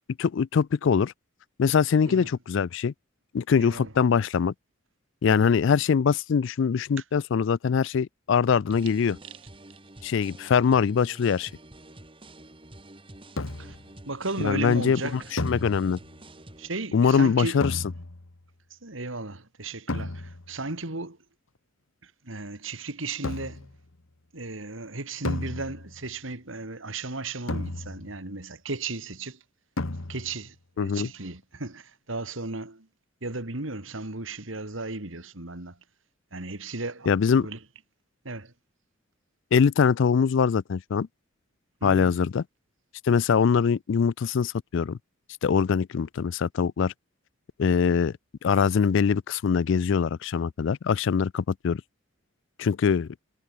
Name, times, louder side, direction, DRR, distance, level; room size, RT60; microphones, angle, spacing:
voice 1, 0.2-1.1 1.6-2.9 3.3-4.5 5.2-9.2 10.0-11.5 14.4-15.0 15.4-16.0 16.9-17.6 30.8-31.1 37.1-37.5 39.5-41.1 41.8-42.4 43.0-45.0 45.4-46.9 47.6-51.8 52.6-53.1, left 6 dB, 60° left, 0.4 m, -23 dB
voice 2, 3.5-3.9 5.3-5.5 13.6-13.8 14.1-15.3 16.6-17.6 18.7-21.2 22.0-23.7 24.3-29.4 30.1-32.9 33.2-35.8 36.3-37.6 38.2-38.5 41.8-42.2, right 3 dB, 70° right, 2.8 m, -35 dB
sound 1, 8.7-16.7, right 1 dB, 25° right, 2.4 m, -49 dB
sound 2, 13.4-13.9 15.4-16.2 17.6-18.4 19.9-20.6 23.2-23.8 25.3-26.1 27.5-28.3 29.8-30.5, left 2 dB, 80° left, 1.5 m, -33 dB
head